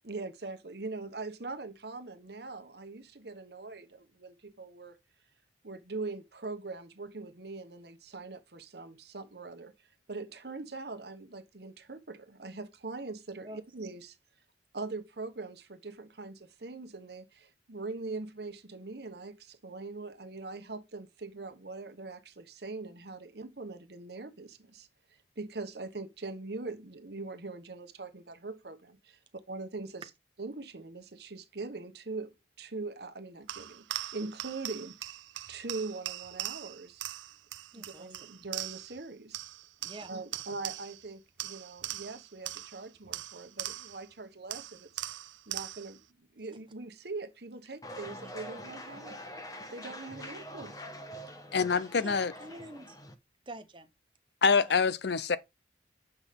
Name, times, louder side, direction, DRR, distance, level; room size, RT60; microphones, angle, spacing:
voice 1, 0.0-5.0 5.6-9.7 10.1-13.5 13.7-14.2 14.7-24.9 25.4-29.2 29.5-30.0 30.4-35.1 35.5-37.2 37.8-39.4 40.1-45.0 45.5-49.2 49.7-50.8, right 3 dB, 60° right, 1.2 m, -42 dB
sound 1, 33.5-39.0 39.3-41.1 41.4-44.1 44.5-46.0, right 15 dB, 85° right, 0.5 m, -41 dB
voice 2, 37.7-38.3 39.8-40.4 48.1-48.3 51.7-53.0 53.5-53.9 54.7-54.8, right 1 dB, 25° right, 1.1 m, -48 dB
sound 2, 47.8-53.1, equal, 20° left, 1.0 m, -45 dB
voice 3, 51.5-52.3 54.4-55.4, left 5 dB, 65° left, 0.6 m, -25 dB
7.9 x 5.9 x 3.6 m
head